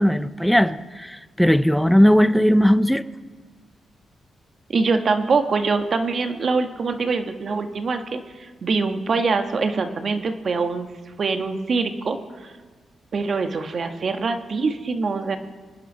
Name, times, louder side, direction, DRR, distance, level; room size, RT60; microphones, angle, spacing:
voice 1, 0.0-3.0, equal, ahead, 0.6 m, -18 dB
voice 2, 4.7-10.9 11.2-12.2 13.1-15.4, right 4 dB, 50° right, 1.3 m, -24 dB
25.0 x 9.3 x 5.6 m
cardioid pair, 95°, 0 cm